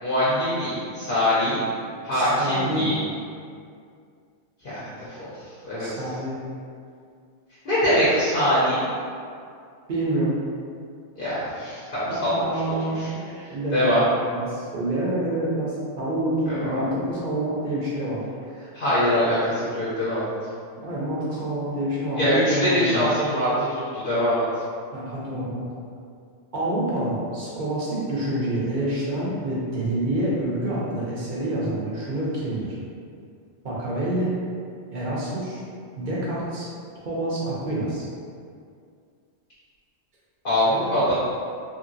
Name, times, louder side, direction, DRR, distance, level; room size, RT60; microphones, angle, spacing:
voice 1, 0.0-1.6 2.0-3.0 4.6-6.0 7.6-8.8 11.1-12.5 12.9-14.0 16.5-16.8 18.7-20.3 22.1-24.5 40.4-41.1, equal, 50° left, -11 dB, 0.9 m, -23 dB
voice 2, 2.1-2.9 5.8-6.4 9.9-10.4 12.1-18.3 20.8-23.1 24.9-25.6 26.5-32.7 33.6-34.4 34.9-35.6 36.0-36.7 37.0-38.1, right 1 dB, 45° right, -6 dB, 0.7 m, -27 dB
2.8 x 2.7 x 2.6 m, 2.2 s
omnidirectional pair, 1.3 m